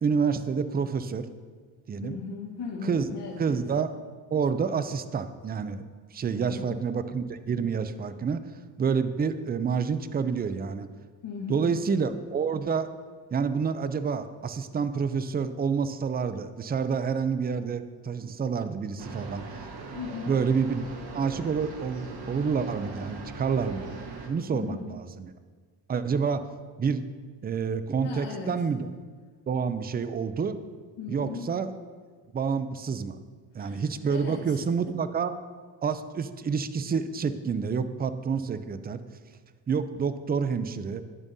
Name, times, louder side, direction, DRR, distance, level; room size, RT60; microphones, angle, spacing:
voice 1, 0.0-1.3 1.9-2.2 2.8-3.0 3.4-4.0 4.3-5.8 6.1-8.4 8.8-10.9 11.5-12.9 13.3-19.4 20.3-20.8 21.1-24.8 25.2-25.3 25.9-26.4 26.8-27.0 27.4-28.9 29.5-30.5 31.1-31.7 32.3-33.2 33.5-35.4 35.8-39.0 39.7-41.0, right 6 dB, 25° right, 12 dB, 0.4 m, -28 dB
voice 2, 2.0-3.6 6.3-6.8 11.2-11.7 19.9-20.3 24.5-24.9 28.0-28.7 31.0-31.5 33.5-34.9, left 5 dB, 70° left, -5 dB, 1.2 m, -38 dB
sound 1, 19.0-24.3, right 3 dB, 60° right, 1.1 m, -40 dB
9.9 x 7.2 x 2.7 m, 1.5 s
cardioid pair, 80°, 43 cm